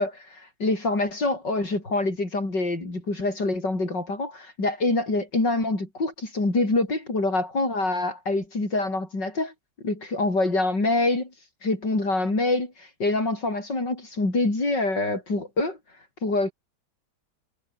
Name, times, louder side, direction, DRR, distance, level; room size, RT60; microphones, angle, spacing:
voice 1, 0.0-9.5 9.8-11.3 11.6-15.8 16.2-16.5, left 2 dB, 90° left, 7.3 m, -25 dB
omnidirectional pair, 1.8 m